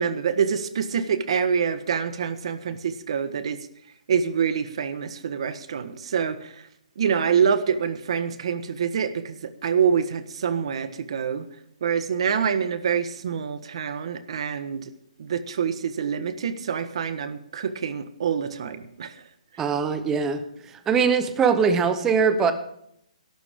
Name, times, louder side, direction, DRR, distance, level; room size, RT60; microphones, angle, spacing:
voice 1, 0.0-3.6 4.1-6.5 7.0-11.4 11.8-14.9 15.2-19.2, right 7 dB, 50° right, 11 dB, 1.5 m, -26 dB
voice 2, 19.6-20.4 20.9-22.5, right 6 dB, 10° right, 10 dB, 0.9 m, -21 dB
21.5 x 12.5 x 3.8 m, 0.73 s
hypercardioid pair, 170°, 4 cm